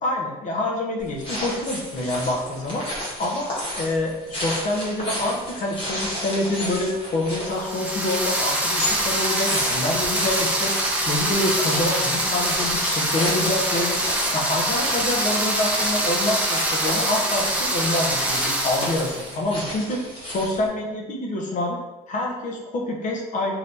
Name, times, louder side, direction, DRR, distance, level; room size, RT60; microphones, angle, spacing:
voice 1, 0.0-2.8 3.2-3.5 3.8-10.7 11.1-14.0 14.3-20.0 20.2-21.8 22.1-23.5, left 1 dB, 50° left, -1 dB, 0.7 m, -26 dB
sound 1, 1.0-20.7, left 1 dB, 30° left, 1.4 m, -33 dB
sound 2, 7.6-19.3, right 1 dB, 10° right, 0.6 m, -24 dB
3.4 x 2.7 x 2.6 m, 1.1 s
cardioid pair, 110°, 17 cm